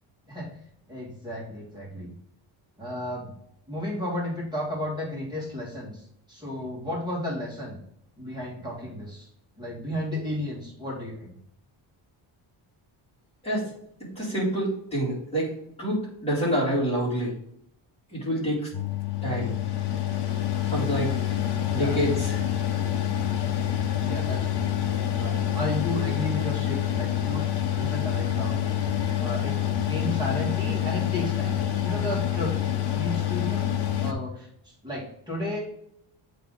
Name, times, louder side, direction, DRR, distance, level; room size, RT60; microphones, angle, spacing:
voice 1, 0.9-2.1 2.8-3.3 3.7-7.8 8.2-9.3 9.6-11.4 21.5-22.0 24.0-24.7 25.1-27.5 27.7-29.6 29.8-32.6 32.9-33.7 34.0-35.6, left 1 dB, 10° right, -5 dB, 2.2 m, -33 dB
voice 2, 14.1-15.5 15.8-17.3 18.1-18.7 19.2-19.5 20.6-21.4 21.7-22.4, right 1 dB, 10° left, -7 dB, 2.8 m, -27 dB
Mechanical fan, 18.7-34.1, left 11 dB, 55° left, 0.8 m, -27 dB
8.3 x 3.5 x 3.9 m, 0.73 s
wide cardioid pair, 175°, 49 cm